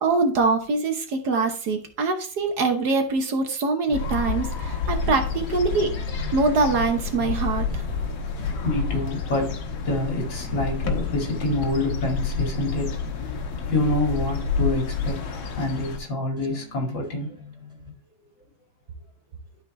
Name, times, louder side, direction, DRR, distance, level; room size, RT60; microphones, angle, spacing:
voice 1, 0.0-5.9 6.3-8.4, right 3 dB, 60° right, 1.5 m, -24 dB
sound 1, 3.9-16.0, left 4 dB, 90° left, 1.9 m, -29 dB
sound 2, 3.9-17.9, left 4 dB, ahead, 2.1 m, -44 dB
voice 2, 8.6-9.5 9.8-17.4, left 2 dB, 75° left, 3.0 m, -27 dB
12.0 x 4.6 x 3.2 m
omnidirectional pair, 2.1 m